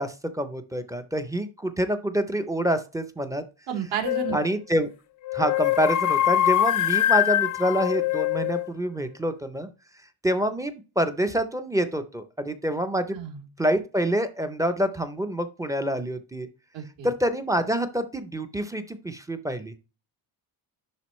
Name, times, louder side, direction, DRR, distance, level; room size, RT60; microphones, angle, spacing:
voice 1, 0.0-3.4 4.3-4.9 5.3-9.7 10.2-13.2 13.6-16.5 17.0-19.7, equal, 10° right, 8 dB, 0.5 m, -27 dB
voice 2, 3.7-4.4 13.1-13.4 16.7-17.1, right 8 dB, 70° right, 2 dB, 2.6 m, -31 dB
sound 1, 4.0-4.5 5.2-8.7, left 13 dB, 45° left, 0.5 m, -23 dB
10.5 x 3.8 x 3.0 m, 0.31 s
cardioid pair, 160°, 45 cm